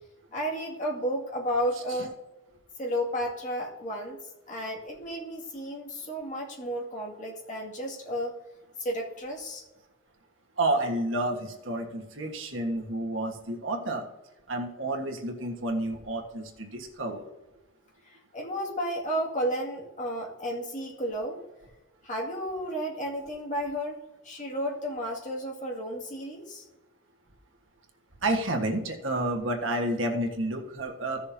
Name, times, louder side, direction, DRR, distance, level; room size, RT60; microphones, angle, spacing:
voice 1, 0.3-2.1 2.8-4.2 4.5-8.3 8.8-9.6 18.1-21.4 22.0-24.0 24.2-26.6, equal, 40° left, -2 dB, 2.2 m, -32 dB
voice 2, 10.6-14.1 14.5-17.3 28.2-31.2, right 1 dB, 85° right, 3 dB, 1.5 m, -30 dB
15.5 x 6.7 x 2.8 m, 1.0 s
head